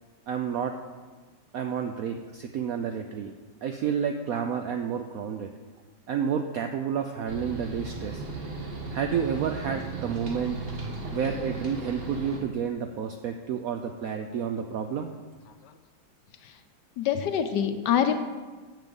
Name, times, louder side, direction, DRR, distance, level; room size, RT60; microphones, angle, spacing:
voice 1, 0.3-0.8 1.5-3.3 3.6-5.5 6.1-8.2 8.9-10.6 11.1-15.1, right 7 dB, 80° right, 5 dB, 0.8 m, -30 dB
sound 1, 7.3-12.4, right 3 dB, 35° right, 1.2 m, -36 dB
voice 2, 17.0-18.2, left 9 dB, 70° left, 8 dB, 1.2 m, -25 dB
7.5 x 6.1 x 6.9 m, 1.4 s
omnidirectional pair, 2.0 m